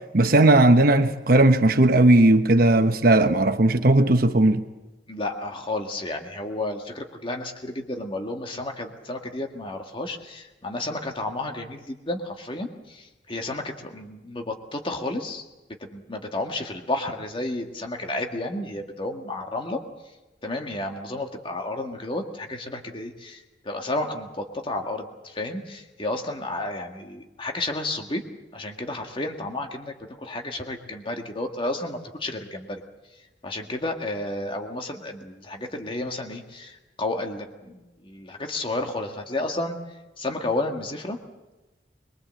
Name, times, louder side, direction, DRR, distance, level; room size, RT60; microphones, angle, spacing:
voice 1, 0.1-4.6, right 2 dB, 55° right, 1.1 m, -17 dB
voice 2, 5.1-15.4 15.8-19.8 20.4-28.2 28.5-32.8 33.4-39.8 40.2-41.2, left 2 dB, 30° left, 1.9 m, -32 dB
23.0 x 22.0 x 7.7 m
head